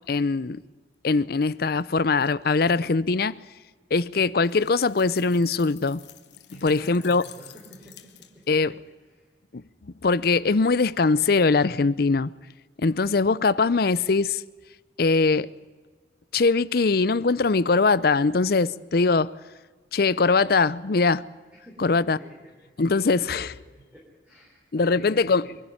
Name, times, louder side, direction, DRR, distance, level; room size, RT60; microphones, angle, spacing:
voice 1, 0.1-0.6 1.0-3.4 3.9-6.0 6.5-7.2 8.5-8.7 9.5-9.6 10.0-12.3 12.8-14.4 15.0-15.5 16.3-19.3 19.9-21.3 21.8-22.2 22.8-23.5 24.7-25.5, left 4 dB, 60° left, 0.6 m, -22 dB
sound 1, 4.4-8.6, left 12 dB, 75° left, 1.5 m, -50 dB
voice 2, 6.5-9.3 21.5-25.6, equal, 5° right, 3.9 m, -49 dB
23.5 x 11.5 x 9.8 m
head